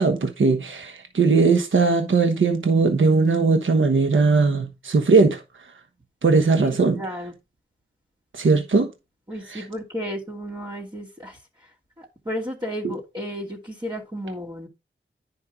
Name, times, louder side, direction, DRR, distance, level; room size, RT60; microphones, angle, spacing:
voice 1, 0.0-5.4 6.2-7.0 8.3-8.9 9.5-9.6, right 4 dB, 70° right, 1.2 m, -19 dB
voice 2, 6.6-7.3 9.3-11.4 12.0-14.7, equal, 20° right, 2.7 m, -33 dB
10.0 x 5.6 x 3.6 m
cardioid pair, 50°, 21 cm